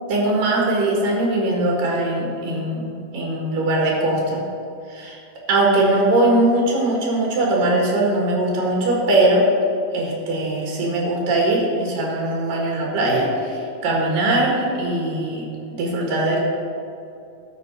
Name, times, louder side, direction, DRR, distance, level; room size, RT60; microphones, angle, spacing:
voice 1, 0.1-4.4 4.9-5.2 5.5-9.5 9.9-15.5 15.8-16.4, right 2 dB, 90° right, -2 dB, 3.5 m, -20 dB
12.5 x 7.5 x 4.5 m, 2.5 s
omnidirectional pair, 3.8 m